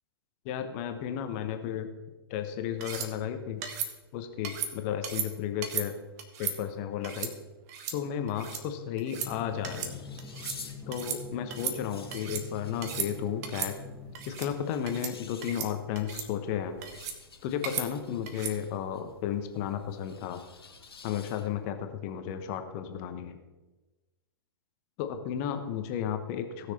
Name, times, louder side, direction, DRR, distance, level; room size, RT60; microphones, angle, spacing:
voice 1, 0.4-1.9 2.3-3.6 4.1-6.0 6.4-7.3 7.9-10.0 10.9-13.8 14.3-16.8 17.4-20.4 21.0-23.4 25.0-26.7, left 9 dB, 35° left, 7 dB, 1.2 m, -33 dB
sound 1, 2.8-3.1 3.6-3.9 4.4-4.7 5.0-5.3 5.6-5.9 6.2-6.6 7.0-7.3 7.7-8.0 8.3-8.6 9.0-9.3 9.6-9.9 10.2-10.6 10.9-11.2 11.5-12.4 12.8-13.1 13.4-13.7 14.1-14.5 14.9-15.1 15.4-15.7 16.0-16.3 16.8-17.2 17.6-17.9 18.3-18.5, right 7 dB, 40° right, 1.3 m, -35 dB
sound 2, 9.0-21.7, left 5 dB, 70° left, 1.5 m, -52 dB
Drum, 9.1-14.7, left 3 dB, ahead, 1.7 m, -45 dB
17.5 x 6.5 x 4.1 m, 1.1 s
figure-of-eight pair, 105°, 13 cm